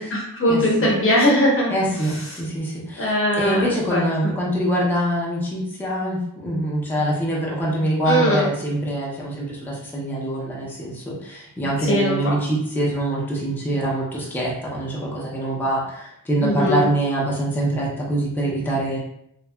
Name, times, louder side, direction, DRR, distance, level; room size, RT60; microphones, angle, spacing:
voice 1, 0.0-1.7 2.2-2.4 3.0-4.3 8.1-8.5 11.8-12.4 16.4-16.9, equal, 35° left, -3 dB, 0.8 m, -21 dB
voice 2, 1.7-19.0, right 1 dB, 5° left, -5 dB, 0.5 m, -24 dB
2.7 x 2.2 x 2.2 m, 0.76 s
wide cardioid pair, 105°, 35 cm